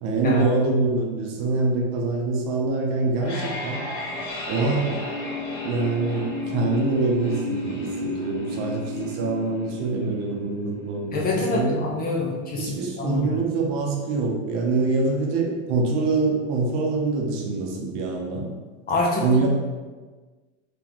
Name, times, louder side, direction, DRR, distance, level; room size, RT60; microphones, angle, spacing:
voice 1, 0.0-3.8 4.5-5.0 5.6-11.8 12.6-18.5 19.2-19.5, right 3 dB, 50° right, 0 dB, 0.8 m, -25 dB
sound 1, 2.9-13.9, left 2 dB, 45° left, 1.2 m, -33 dB
voice 2, 11.1-13.4 18.9-19.5, left 2 dB, 25° left, -2 dB, 0.6 m, -26 dB
3.7 x 3.0 x 3.0 m, 1.4 s
supercardioid pair, 125°, 36 cm